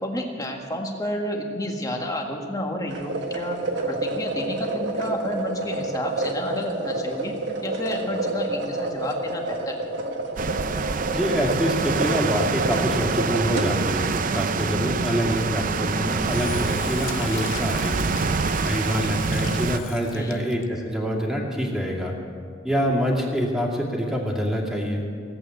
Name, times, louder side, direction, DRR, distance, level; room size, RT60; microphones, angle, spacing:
voice 1, 0.0-3.6 3.9-7.3 7.6-9.8 20.1-20.5, equal, 20° left, 1 dB, 1.8 m, -30 dB
sound 1, 2.9-13.7, right 2 dB, 60° right, 1.5 m, -29 dB
sound 2, 10.4-19.8, right 4 dB, 45° right, 0.5 m, -26 dB
voice 2, 11.1-18.1 18.6-22.1 22.6-25.0, equal, ahead, -1 dB, 2.4 m, -26 dB
Engine / Drill, 16.1-20.6, left 7 dB, 75° left, 0.8 m, -38 dB
17.5 x 8.5 x 9.3 m, 2.4 s
head